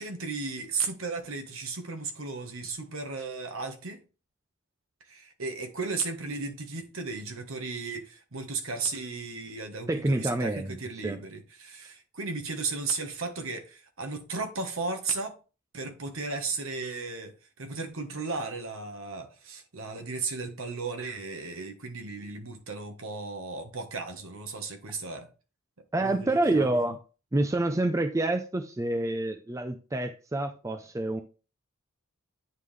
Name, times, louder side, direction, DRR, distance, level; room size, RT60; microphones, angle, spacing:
voice 1, 0.0-4.0 5.1-15.4 15.7-25.3 26.0-26.9, right 4 dB, 65° right, 1.2 m, -35 dB
voice 2, 9.9-10.8 11.0-11.2 25.9-27.0 27.3-31.2, right 2 dB, 15° right, 0.4 m, -27 dB
9.4 x 3.6 x 3.2 m
head